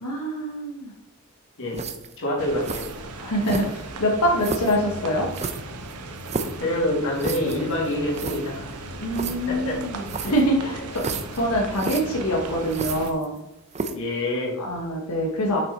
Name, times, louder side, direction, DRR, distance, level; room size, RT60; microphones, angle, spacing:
voice 1, 0.0-0.9 3.2-5.3 9.0-11.0 11.3-13.4 14.6-15.6, equal, 90° left, -2 dB, 1.1 m, -25 dB
sound 1, 1.7-2.2 2.6-2.9 3.4-3.9 4.4-4.8 5.3-6.6 7.2-7.6 7.9-8.4 9.1-9.3 10.1-10.4 11.0-11.4 11.7-12.0 12.7-13.4 13.7-14.1, right 4 dB, 30° right, 0.6 m, -31 dB
voice 2, 2.2-2.9 6.6-8.8 9.5-9.8 13.9-14.6, left 1 dB, 60° left, -2 dB, 2.4 m, -26 dB
sound 2, 2.4-13.1, right 2 dB, 90° right, 0.9 m, -37 dB
6.6 x 5.9 x 4.0 m, 0.89 s
head